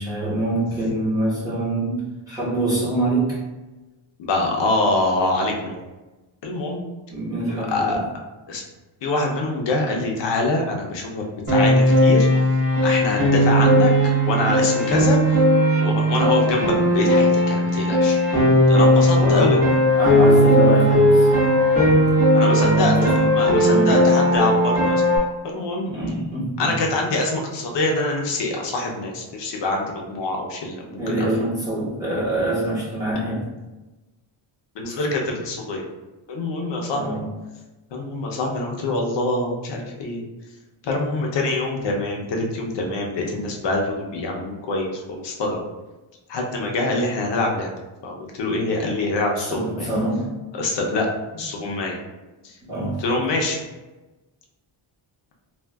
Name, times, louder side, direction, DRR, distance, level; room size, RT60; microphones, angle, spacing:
voice 1, 0.0-3.4 7.1-8.0 19.1-19.5 19.9-21.3 22.4-23.2 23.6-24.0 25.8-26.8 31.0-33.5 34.9-35.0 36.9-37.3 49.4-50.4 52.6-53.0, right 1 dB, 5° right, -9 dB, 1.1 m, -25 dB
voice 2, 4.2-5.8 6.4-6.8 7.5-8.0 8.5-8.6 9.0-12.3 12.8-15.4 15.7-18.2 18.7-19.6 22.3-22.9 23.3-25.0 25.4-25.9 26.6-31.0 34.8-35.8 36.3-37.2 37.9-40.2 40.8-45.6 46.3-47.7 48.0-49.9 50.5-51.1 51.4-52.0 52.4-52.5 53.0-53.6, left 2 dB, 60° left, 0 dB, 0.7 m, -25 dB
Piano, 11.5-25.2, equal, 40° right, 1.5 m, -17 dB
3.5 x 2.4 x 2.2 m, 1.1 s
wide cardioid pair, 175°, 49 cm